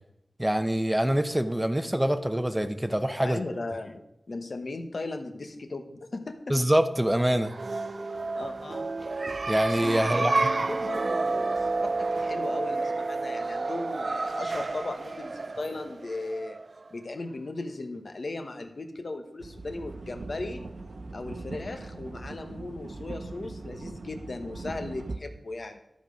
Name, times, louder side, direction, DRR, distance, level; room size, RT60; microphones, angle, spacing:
voice 1, 0.4-3.4 6.5-7.5 9.5-10.5, right 1 dB, 10° right, 9 dB, 0.8 m, -25 dB
voice 2, 3.2-6.5 8.3-8.9 10.0-16.6 16.9-20.6 21.1-25.8, left 2 dB, 60° left, 6 dB, 1.2 m, -37 dB
sound 1, 7.4-16.9, right 3 dB, 55° right, 0.3 m, -30 dB
sound 2, 19.4-25.2, right 2 dB, 80° right, 0.9 m, -40 dB
13.0 x 5.2 x 6.3 m, 0.83 s
wide cardioid pair, 85°, 0 cm